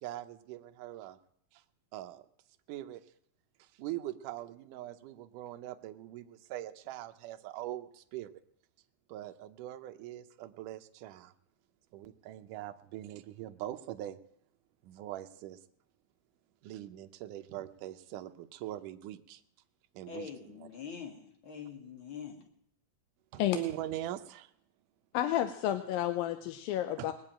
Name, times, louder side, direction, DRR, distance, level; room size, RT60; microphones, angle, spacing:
voice 1, 0.0-1.2 1.5-1.6 1.9-2.2 2.7-3.1 3.6-8.3 9.1-11.3 11.9-14.2 14.8-15.6 16.6-19.4 19.9-20.7 23.3-24.5 27.0-27.1, right 14 dB, 75° right, 7 dB, 1.9 m, -42 dB
voice 2, 20.1-22.5, left 6 dB, 45° left, 3 dB, 1.8 m, -44 dB
voice 3, 25.1-27.1, left 12 dB, 75° left, 9 dB, 2.3 m, -31 dB
20.0 x 7.7 x 8.9 m, 0.68 s
omnidirectional pair, 4.5 m